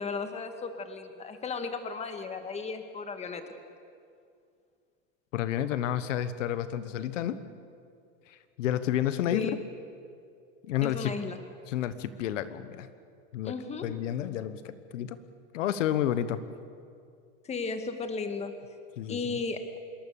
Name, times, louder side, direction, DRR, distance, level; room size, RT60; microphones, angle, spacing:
voice 1, 0.0-3.4 9.3-9.6 10.8-11.4 13.4-13.9 17.4-18.5 19.1-19.6, left 4 dB, 15° left, 7 dB, 1.9 m, -35 dB
voice 2, 5.3-7.4 8.3-9.5 10.6-11.2 11.7-12.9 13.3-13.5 13.8-15.2 15.5-16.4 19.0-19.2, left 11 dB, 75° left, 12 dB, 1.3 m, -30 dB
26.5 x 21.5 x 7.1 m, 2.3 s
supercardioid pair, 140°, 38 cm